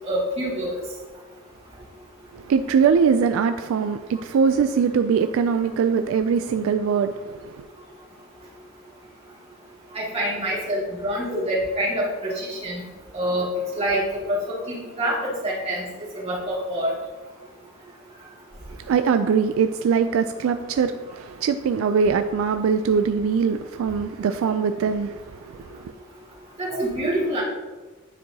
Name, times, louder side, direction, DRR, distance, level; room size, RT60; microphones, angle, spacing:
voice 1, 0.0-0.7 9.9-12.8 13.1-13.5 13.8-14.4 14.7-15.8 16.2-16.9 26.6-27.4, right 1 dB, 30° right, -6 dB, 2.2 m, -26 dB
voice 2, 2.3-7.7 18.7-25.9, right 6 dB, 75° right, 8 dB, 0.3 m, -22 dB
9.9 x 4.6 x 2.8 m, 1.3 s
head